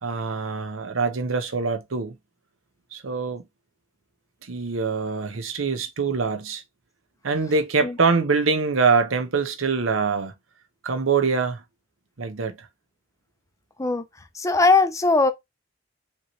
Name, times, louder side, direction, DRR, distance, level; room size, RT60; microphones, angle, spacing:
voice 1, 0.0-2.2 2.9-3.4 4.4-6.6 7.2-10.3 10.8-11.6 12.2-12.7, right 4 dB, 90° right, 0.8 m, -24 dB
voice 2, 14.4-15.3, left 3 dB, 15° left, 0.5 m, -19 dB
5.3 x 3.0 x 3.1 m
head